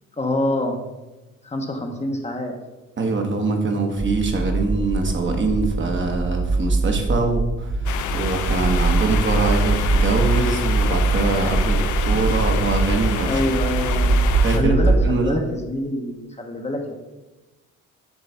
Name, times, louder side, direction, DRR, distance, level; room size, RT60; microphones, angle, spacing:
voice 1, 0.2-0.8 1.4-2.5 13.2-14.2 14.5-16.9, left 1 dB, 20° left, 2 dB, 0.9 m, -26 dB
voice 2, 3.0-7.9 8.1-13.4 14.4-15.4, right 3 dB, 40° right, 3 dB, 1.1 m, -23 dB
sound 1, 4.0-15.1, right 3 dB, 15° right, 0.3 m, -22 dB
sound 2, 7.9-14.6, left 9 dB, 80° left, 0.6 m, -29 dB
7.1 x 3.1 x 5.6 m, 1.1 s
cardioid pair, 90°, 30 cm